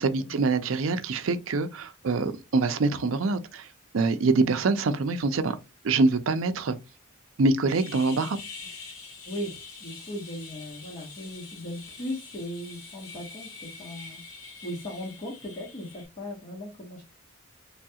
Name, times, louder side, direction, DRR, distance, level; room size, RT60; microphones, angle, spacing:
voice 1, 0.0-3.7 3.9-5.6 5.8-6.8 7.4-8.4, right 3 dB, 70° right, 0.5 m, -25 dB
sound 1, 7.7-16.1, left 4 dB, 75° left, 1.3 m, -45 dB
voice 2, 9.2-14.2 14.6-17.0, left 1 dB, 35° left, 1.0 m, -38 dB
3.4 x 2.3 x 2.7 m
head